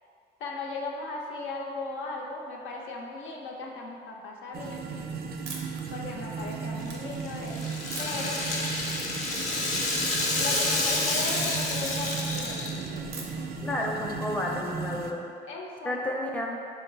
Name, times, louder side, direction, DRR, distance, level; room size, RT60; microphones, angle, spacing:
voice 1, 0.4-4.9 5.9-7.7 8.0-8.4 10.4-13.3 15.4-16.3, left 3 dB, 80° left, -1 dB, 0.6 m, -37 dB
sound 1, 4.5-15.1, right 5 dB, 50° right, 0.4 m, -36 dB
sound 2, 5.5-5.8 6.3-6.9 7.9-8.3 8.8-9.2 9.4-9.6 10.5-10.9 11.3-12.2 13.1-13.5, right 4 dB, 90° right, 0.7 m, -41 dB
Rattle (instrument), 6.8-13.0, left 2 dB, 40° left, 0.7 m, -29 dB
voice 2, 13.6-15.2 15.8-16.6, left 1 dB, 5° left, -2 dB, 0.5 m, -31 dB
3.9 x 2.8 x 3.9 m, 2.4 s
cardioid pair, 90°, 20 cm